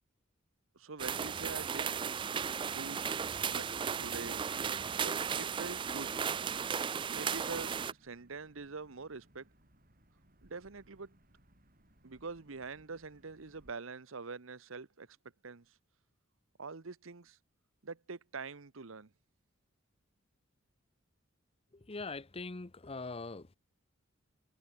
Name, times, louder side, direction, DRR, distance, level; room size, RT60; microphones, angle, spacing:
voice 1, 0.7-1.9 2.6-3.0 3.5-4.5 5.0-6.2 7.1-7.7 8.0-9.5 10.4-11.1 12.0-15.2 15.4-15.8 16.6-17.4 17.8-19.1, right 4 dB, 75° right, 1.0 m, -45 dB
sound 1, 1.0-7.9, right 7 dB, 25° right, 0.3 m, -35 dB
sound 2, 4.6-13.7, right 1 dB, 45° right, 7.0 m, -66 dB
voice 2, 21.7-23.6, left 3 dB, 30° left, 0.8 m, -42 dB
head